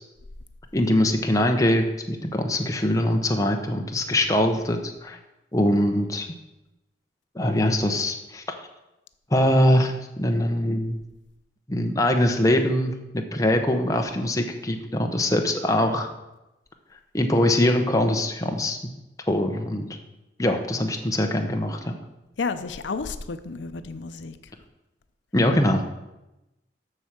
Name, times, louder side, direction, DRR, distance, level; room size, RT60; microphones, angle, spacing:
voice 1, 0.7-5.2 5.5-6.3 7.3-8.4 9.3-11.0 11.7-16.1 17.1-18.8 19.3-19.9 20.4-22.0 25.3-25.8, left 1 dB, 20° left, 3 dB, 0.9 m, -22 dB
voice 2, 22.4-24.4, left 4 dB, 85° left, 11 dB, 0.6 m, -31 dB
8.0 x 6.3 x 7.2 m, 0.97 s
head